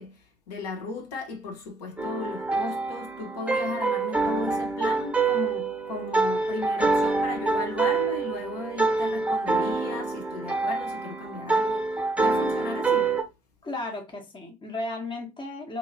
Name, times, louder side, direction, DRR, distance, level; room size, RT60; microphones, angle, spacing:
voice 1, 0.0-13.2, left 3 dB, 70° left, 1.0 m, -36 dB
sound 1, 2.0-13.2, right 3 dB, 5° right, 1.0 m, -26 dB
voice 2, 13.6-15.8, left 2 dB, 25° left, 0.9 m, -34 dB
2.8 x 2.8 x 2.7 m
figure-of-eight pair, 65°, 21 cm